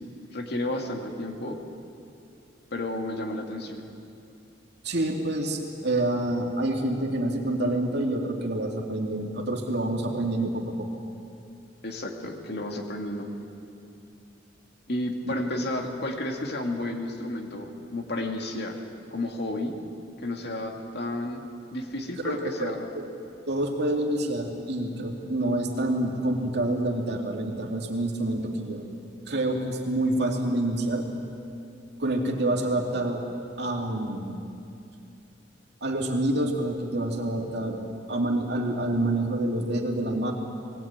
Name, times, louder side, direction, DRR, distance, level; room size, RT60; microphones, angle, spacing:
voice 1, 0.3-1.6 2.7-3.9 11.8-13.4 14.9-18.8 19.1-19.7 20.2-21.4 21.7-22.9, left 1 dB, 60° left, 2 dB, 2.4 m, -32 dB
voice 2, 4.8-10.9 22.2-23.1 23.5-28.8 29.3-31.1 32.0-33.2 33.6-34.3 35.8-37.8 38.1-40.3, right 1 dB, 60° right, 1 dB, 2.7 m, -27 dB
20.5 x 17.5 x 9.0 m, 2.5 s
head